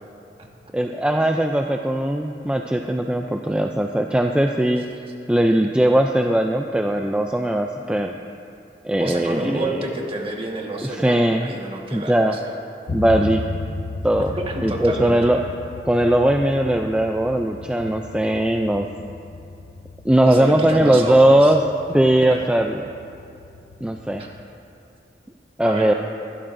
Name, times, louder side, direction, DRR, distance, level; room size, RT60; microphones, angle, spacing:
voice 1, 0.7-4.8 5.3-8.2 8.8-9.9 10.8-11.5 11.9-12.4 12.9-13.4 14.0-14.3 14.6-15.4 15.9-18.9 20.0-21.6 21.9-22.8 23.8-24.2 25.6-25.9, right 1 dB, 5° right, 3 dB, 0.3 m, -19 dB
voice 2, 9.0-12.1 12.4-12.5 14.3-15.2 20.3-21.5 22.2-22.4 24.2-24.3 25.6-25.9, right 2 dB, 30° right, 0 dB, 1.5 m, -29 dB
sound 1, 12.9-24.4, left 3 dB, 80° left, 0.5 m, -35 dB
21.5 x 12.5 x 2.6 m, 2.6 s
head